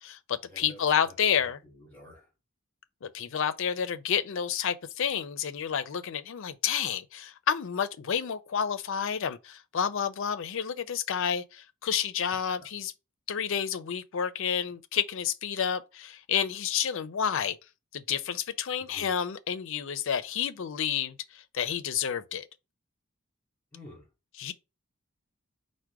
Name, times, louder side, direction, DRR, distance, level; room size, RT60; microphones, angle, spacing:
voice 1, 0.0-1.6 3.0-12.9 13.3-17.6 17.9-21.2 21.5-22.5 24.4-24.5, left 8 dB, 65° left, 0.5 m, -30 dB
voice 2, 1.8-2.3 18.8-19.1 23.7-24.0, left 1 dB, 10° left, 2.4 m, -49 dB
4.7 x 2.1 x 4.5 m
head